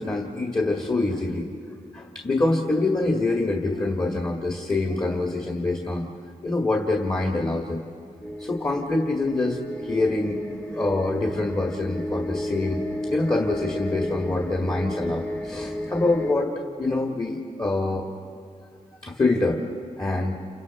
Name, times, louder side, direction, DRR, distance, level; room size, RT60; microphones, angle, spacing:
voice 1, 0.0-1.5 1.9-6.1 6.4-7.8 8.4-9.6 9.9-10.4 10.7-12.8 13.1-18.0 19.0-19.6 20.0-20.4, left 2 dB, 25° left, 1 dB, 1.9 m, -25 dB
sound 1, 8.2-16.3, left 1 dB, 10° left, 0.6 m, -33 dB
30.0 x 28.5 x 4.3 m, 2.3 s
wide cardioid pair, 110°, 14 cm